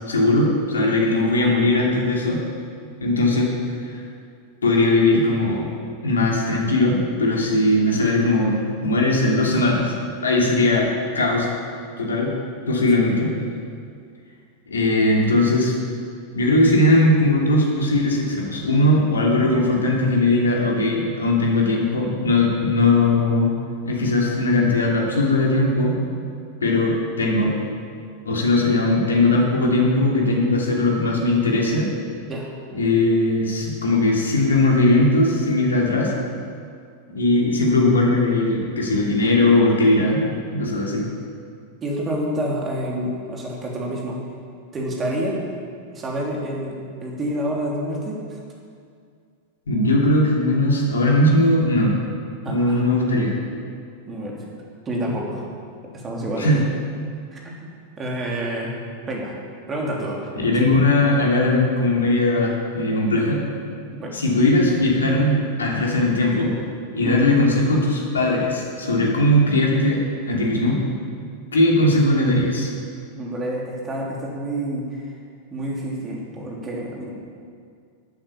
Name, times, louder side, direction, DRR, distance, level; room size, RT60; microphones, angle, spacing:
voice 1, 0.1-2.4 3.0-3.5 3.8-3.9 4.6-5.7 6.0-9.9 10.2-10.9 11.1-11.5 12.0-12.3 12.7-13.3 14.7-15.7 16.3-23.5 23.8-26.0 26.6-27.5 28.2-31.9 32.7-36.1 37.1-40.2 40.5-41.1 49.7-51.9 52.5-53.4 56.4-56.6 60.4-63.4 64.1-66.6 66.9-70.0 70.3-70.8 71.5-72.7, left 2 dB, 70° left, -2 dB, 2.9 m, -19 dB
voice 2, 41.8-44.2 44.7-45.4 45.9-48.4 52.4-52.8 54.1-54.5 54.8-55.4 55.9-56.6 57.3-57.7 58.0-58.7 59.1-59.4 59.7-60.6 63.9-64.1 67.0-67.4 73.1-75.1 75.5-77.1, right 1 dB, 20° right, -2 dB, 3.2 m, -28 dB
12.5 x 9.0 x 7.2 m, 2.2 s
figure-of-eight pair, 90°, 0 cm